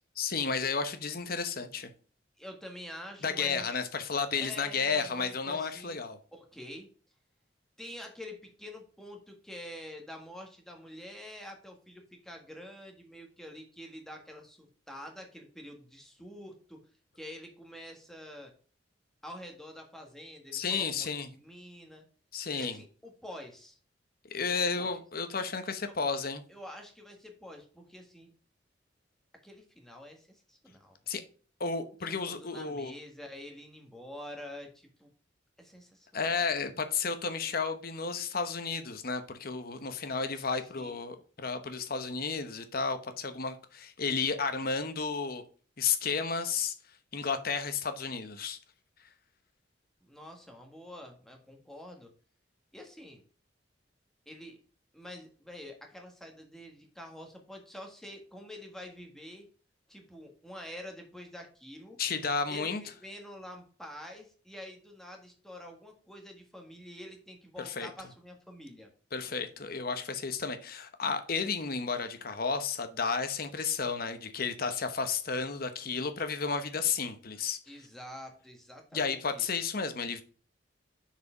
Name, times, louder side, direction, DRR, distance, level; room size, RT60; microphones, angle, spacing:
voice 1, 0.2-1.9 3.2-6.2 20.5-21.3 22.3-22.8 24.3-26.4 31.1-31.2 31.6-32.9 36.1-45.4 45.8-46.7 47.1-48.6 62.0-62.8 67.6-67.9 69.1-77.6 78.9-80.2, left 5 dB, 55° left, 1.0 m, -32 dB
voice 2, 2.4-3.7 4.3-6.0 6.3-6.9 7.8-16.8 17.1-18.5 19.2-22.0 22.5-23.8 24.5-25.0 25.9-26.2 26.5-28.3 29.4-31.0 32.0-35.1 35.6-36.4 40.4-40.5 40.7-41.0 50.0-52.1 52.7-53.2 54.2-54.6 54.9-59.5 59.9-62.0 62.5-68.9 77.7-79.5, left 1 dB, ahead, 1.6 m, -47 dB
6.8 x 4.8 x 5.0 m
head